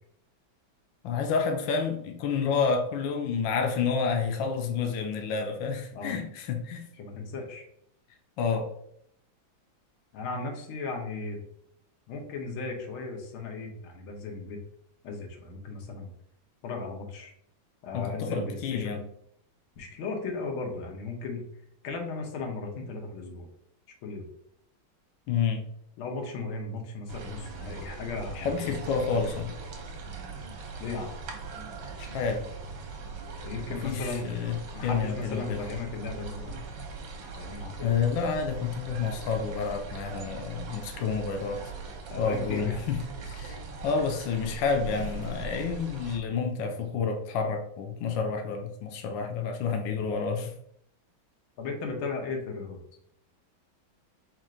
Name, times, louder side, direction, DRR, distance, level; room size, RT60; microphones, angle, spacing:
voice 1, 1.0-6.9 8.4-8.7 17.9-19.0 25.3-25.7 28.3-29.5 32.0-32.5 33.8-35.6 37.8-41.6 42.2-50.5, left 5 dB, 75° left, 4 dB, 1.3 m, -29 dB
voice 2, 7.0-7.7 10.1-11.4 12.1-14.6 15.0-16.1 16.6-17.3 17.8-19.0 19.8-21.4 21.8-23.5 24.0-24.3 26.0-28.7 29.1-29.4 30.8-31.1 33.4-34.3 34.7-36.6 37.3-38.0 42.1-42.8 51.6-52.8, left 3 dB, 90° left, 1 dB, 1.8 m, -36 dB
sound 1, 27.1-46.2, right 4 dB, 65° right, 1.5 m, -40 dB
4.4 x 2.5 x 4.8 m, 0.71 s
omnidirectional pair, 2.2 m